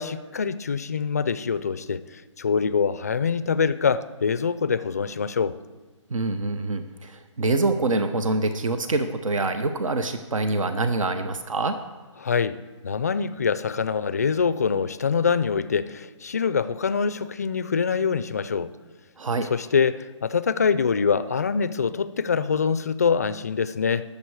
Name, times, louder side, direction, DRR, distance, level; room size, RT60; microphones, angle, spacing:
voice 1, 0.0-2.0 2.4-5.6 12.2-12.6 12.8-18.7 19.5-24.0, left 6 dB, 30° left, 14 dB, 0.3 m, -24 dB
voice 2, 6.1-11.8 19.2-19.5, right 2 dB, 90° right, 9 dB, 0.9 m, -25 dB
19.0 x 7.0 x 4.7 m, 1.4 s
hypercardioid pair, 170°, 16 cm